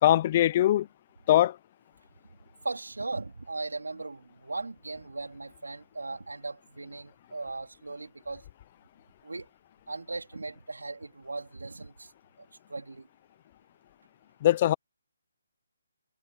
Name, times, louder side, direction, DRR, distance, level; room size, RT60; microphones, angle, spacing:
voice 1, 0.0-0.9 1.3-1.6 14.4-14.7, left 13 dB, 35° left, 0.5 m, -21 dB
voice 2, 2.6-8.4 9.2-9.5 9.9-12.1 12.7-13.1, right 3 dB, 85° right, 3.9 m, -38 dB
figure-of-eight pair, 150°, 0 cm